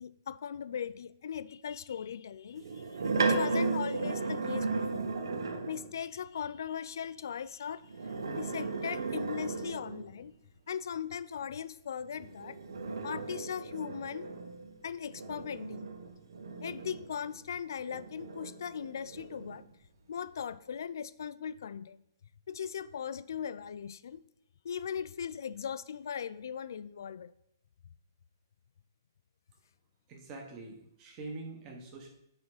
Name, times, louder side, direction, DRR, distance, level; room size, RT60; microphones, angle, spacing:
voice 1, 0.0-2.8 3.2-5.1 5.7-7.8 8.3-10.3 10.7-12.6 13.0-14.3 14.8-15.9 16.6-19.6 20.1-22.0 22.5-24.2 24.6-27.3, left 8 dB, 55° left, 17 dB, 0.3 m, -39 dB
sound 1, 2.6-5.9 7.8-10.2 12.1-17.4 17.9-19.6, right 3 dB, 85° right, 0.9 m, -35 dB
voice 2, 30.1-32.1, right 2 dB, 20° right, 1 dB, 1.2 m, -44 dB
9.3 x 3.6 x 4.8 m, 0.78 s
hypercardioid pair, 175°, 2 cm